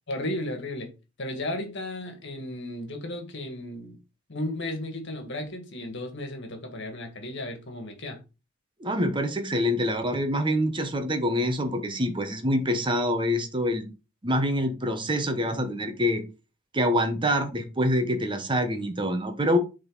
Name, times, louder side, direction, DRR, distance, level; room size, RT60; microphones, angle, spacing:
voice 1, 0.1-0.9 1.2-4.0 4.3-8.2, left 1 dB, 60° left, 1.9 m, -34 dB
voice 2, 8.8-13.9 14.2-16.2 16.7-19.6, equal, 25° right, 1.1 m, -26 dB
7.7 x 3.9 x 3.9 m
head